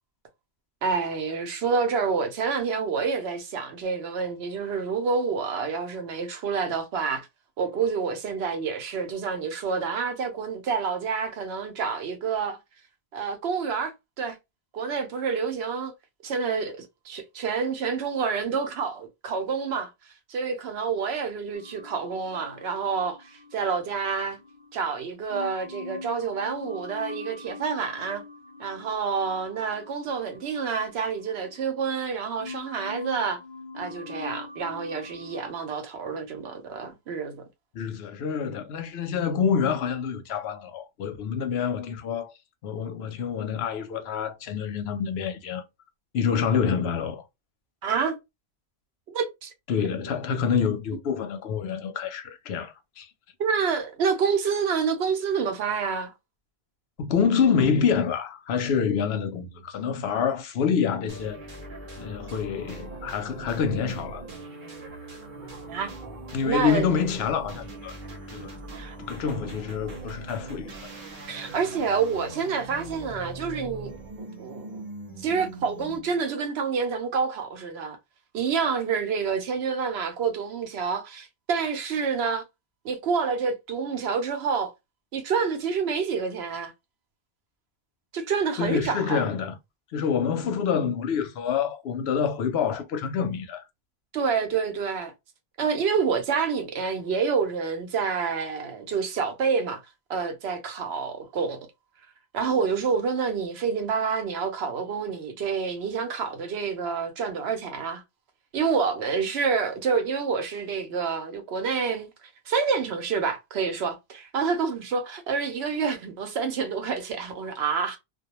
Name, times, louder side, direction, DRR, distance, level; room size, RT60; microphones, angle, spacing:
voice 1, 0.8-7.3 7.6-12.6 13.1-14.4 14.7-15.9 16.2-19.9 20.3-24.4 24.7-28.2 28.6-33.4 33.7-37.4 47.8-48.1 49.1-49.5 53.4-56.1 65.7-65.9 66.4-66.8 68.7-68.9 71.3-73.9 74.2-74.8 75.2-78.0 78.3-82.4 82.8-84.7 85.1-86.7 88.1-89.3 94.1-95.1 95.6-99.8 100.1-101.7 102.3-108.0 108.5-112.1 112.5-118.0, right 5 dB, 85° right, 0.9 m, -28 dB
sound 1, 21.5-24.8 25.3-32.1 32.4-35.6, left 3 dB, 50° left, 0.7 m, -43 dB
voice 2, 37.7-42.3 42.6-45.6 46.1-47.2 49.7-53.1 57.0-61.4 62.0-64.2 66.3-68.0 68.3-68.6 69.0-70.7 88.6-89.6 89.9-93.6, left 7 dB, 80° left, 0.9 m, -27 dB
sound 2, 61.1-76.2, right 2 dB, 55° right, 0.9 m, -41 dB
2.2 x 2.2 x 2.9 m
omnidirectional pair, 1.0 m